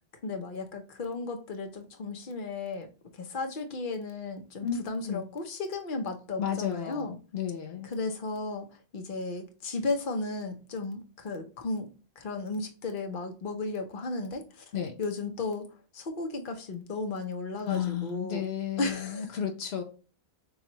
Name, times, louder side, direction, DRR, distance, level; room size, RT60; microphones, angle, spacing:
voice 1, 0.2-2.9 3.1-7.2 7.8-8.7 8.9-11.9 12.2-14.6 15.0-15.7 15.9-18.5 18.8-19.3, left 3 dB, 55° left, 1.0 m, -34 dB
voice 2, 6.4-7.9 14.7-14.9 17.7-19.8, left 9 dB, 75° left, 1.0 m, -33 dB
7.1 x 2.4 x 3.0 m
omnidirectional pair, 1.1 m